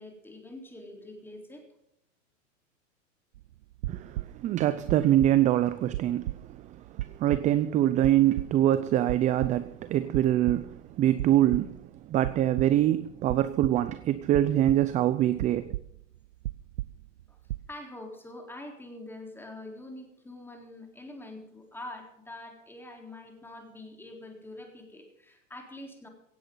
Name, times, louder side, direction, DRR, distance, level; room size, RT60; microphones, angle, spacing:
voice 1, 0.0-1.7 17.3-17.4 17.7-26.1, left 1 dB, 5° left, 3.8 m, -45 dB
sound 1, 3.3-4.5 4.8-5.6 5.9-7.6 8.0-8.8 9.1-9.9 10.1-10.8 11.2-11.8 12.2-13.0 13.3-13.9 14.3-15.1 15.4-16.2 16.4-17.2 17.5-17.7, right 16 dB, 65° right, 0.6 m, -36 dB
voice 2, 3.9-6.3 7.0-11.8 12.1-15.7, right 12 dB, 20° right, 0.5 m, -24 dB
17.0 x 16.0 x 3.9 m
hypercardioid pair, 130°, 38 cm